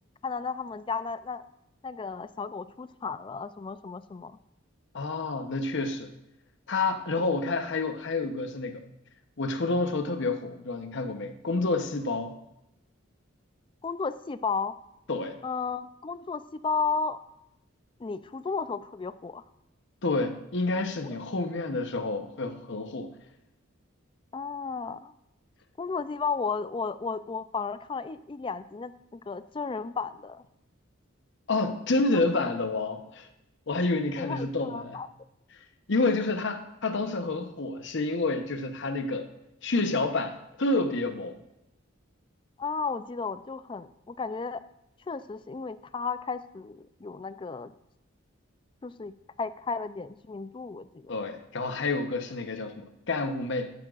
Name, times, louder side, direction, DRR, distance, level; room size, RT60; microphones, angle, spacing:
voice 1, 0.2-1.4 1.8-4.4 7.2-7.3 13.8-14.7 15.4-17.2 18.0-19.4 21.0-21.2 24.3-25.1 25.8-30.4 32.1-32.4 34.2-35.1 42.6-44.6 45.1-47.7 48.8-51.1, left 5 dB, 25° left, 13 dB, 0.3 m, -34 dB
voice 2, 4.9-6.1 6.7-8.8 9.4-12.3 15.1-15.4 20.0-23.1 31.5-33.3 33.7-35.0 35.9-39.3 39.6-41.4 51.1-53.7, left 3 dB, 60° left, 7 dB, 0.8 m, -29 dB
11.5 x 9.9 x 2.4 m, 0.86 s
head